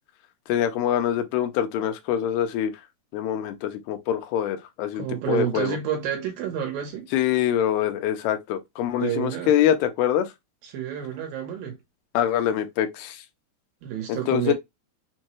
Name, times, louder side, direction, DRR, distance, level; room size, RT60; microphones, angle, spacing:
voice 1, 0.5-2.7 3.1-5.8 7.1-10.3 12.1-13.2 14.1-14.5, left 10 dB, 80° left, 2.6 m, -24 dB
voice 2, 4.9-7.1 9.0-9.5 10.6-11.8 13.8-14.5, right 10 dB, 70° right, 2.5 m, -29 dB
6.3 x 2.2 x 3.0 m
omnidirectional pair, 4.5 m